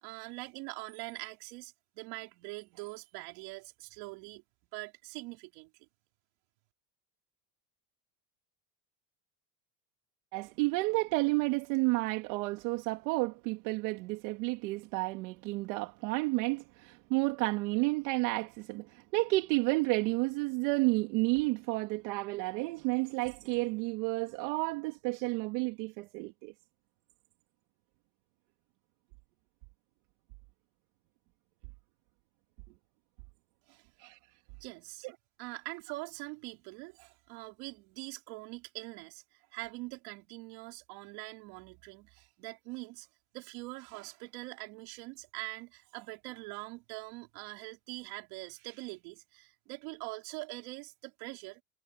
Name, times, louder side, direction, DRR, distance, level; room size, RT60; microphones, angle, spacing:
voice 1, 0.0-4.4 4.7-5.7 33.7-33.8 34.6-35.1 35.4-43.1 43.3-51.6, right 25 dB, 70° right, 4.2 m, -44 dB
voice 2, 10.3-26.5 34.0-34.2, right 24 dB, 85° right, 2.5 m, -31 dB
cardioid pair, 180°, 48 cm